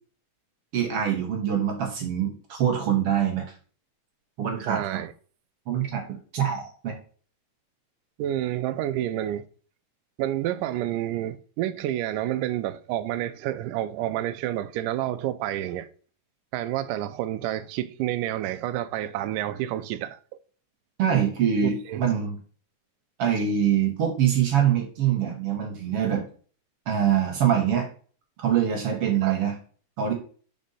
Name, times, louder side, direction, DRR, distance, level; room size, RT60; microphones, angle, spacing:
voice 1, 0.7-3.5 4.4-5.0 5.7-6.9 21.0-22.4 23.2-26.2 26.9-27.9 28.4-29.6 30.0-30.1, right 9 dB, 60° right, 1.6 m, -24 dB
voice 2, 4.7-5.1 8.2-9.5 10.2-15.9 16.5-20.2 21.6-22.2 29.2-29.4, right 13 dB, 85° right, 2.1 m, -29 dB
5.2 x 5.2 x 5.4 m
omnidirectional pair, 3.8 m